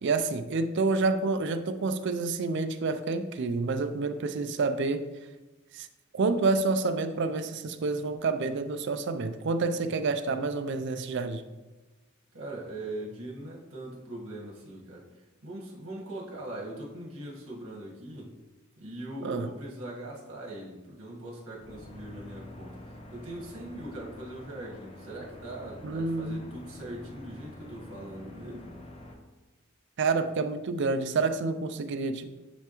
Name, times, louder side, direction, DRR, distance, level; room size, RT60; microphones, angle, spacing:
voice 1, 0.0-5.1 5.7-5.9 6.1-11.4 19.2-19.5 25.8-26.4 30.0-32.3, right 3 dB, 55° right, 10 dB, 0.4 m, -28 dB
voice 2, 12.3-18.3 18.8-28.7, right 1 dB, 80° right, -3 dB, 1.5 m, -41 dB
sound 1, 21.5-29.1, left 2 dB, 30° left, 0.7 m, -47 dB
9.2 x 3.4 x 3.0 m, 1.1 s
head